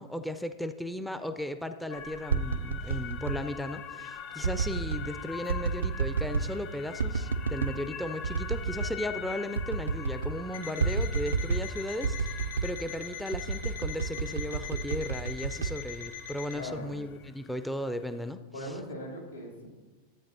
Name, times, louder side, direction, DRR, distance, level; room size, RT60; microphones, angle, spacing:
voice 1, 0.0-18.7, left 1 dB, 5° left, 9 dB, 0.4 m, -36 dB
sound 1, 1.9-18.3, left 8 dB, 40° left, 0.6 m, -44 dB
sound 2, 2.1-3.4 4.4-5.1 5.5-6.5 7.0-7.8 8.2-9.0 9.2-9.3 9.6-10.4 10.8-11.7 12.0-12.8 13.3-16.4 16.8-17.3, right 5 dB, 70° right, 0.4 m, -30 dB
Alarm, 10.5-16.6, left 8 dB, 65° left, 3.4 m, -42 dB
voice 2, 16.5-16.9 18.5-19.7, left 1 dB, 80° left, -1 dB, 2.6 m, -39 dB
13.0 x 8.6 x 2.7 m, 1.2 s
figure-of-eight pair, 90°, 0 cm